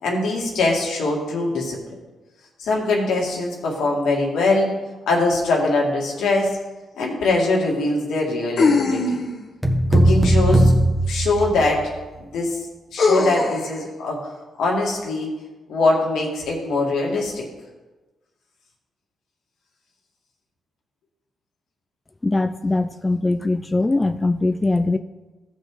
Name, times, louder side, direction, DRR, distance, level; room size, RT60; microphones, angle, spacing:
voice 1, 0.0-1.8 2.6-4.7 5.1-6.6 7.0-9.2 9.9-10.7 11.1-11.9 12.2-12.6 12.9-14.3 14.6-15.3 15.7-17.5, left 2 dB, 85° left, -2 dB, 2.1 m, -22 dB
sound 1, 6.5-6.6 8.6-9.5 11.4-11.5 13.0-13.7, left 3 dB, 60° left, 1.2 m, -20 dB
sound 2, 9.6-11.9, right 1 dB, 5° right, 1.5 m, -18 dB
voice 2, 22.2-25.0, left 2 dB, 20° left, 9 dB, 0.4 m, -21 dB
14.5 x 5.2 x 3.8 m, 1.2 s
cardioid pair, 70°, 0 cm